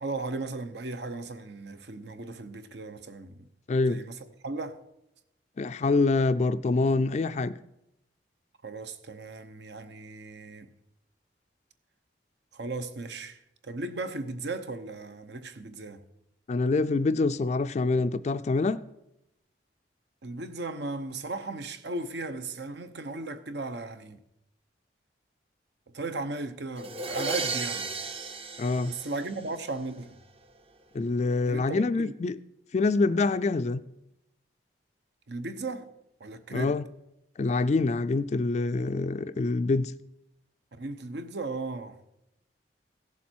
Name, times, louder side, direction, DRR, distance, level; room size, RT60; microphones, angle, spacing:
voice 1, 0.0-3.5 3.8-4.8 8.6-10.7 12.5-16.0 20.2-24.2 25.9-27.9 28.9-30.2 31.5-32.1 35.3-35.9 36.2-36.7 40.7-42.0, right 3 dB, 70° right, 0.8 m, -36 dB
voice 2, 3.7-4.0 5.6-7.5 16.5-18.8 28.6-28.9 30.9-32.4 32.7-33.8 36.5-36.8 37.4-39.9, left 3 dB, 40° left, 0.3 m, -25 dB
sound 1, 26.8-29.7, right 3 dB, 30° right, 0.6 m, -34 dB
16.0 x 7.2 x 4.5 m
head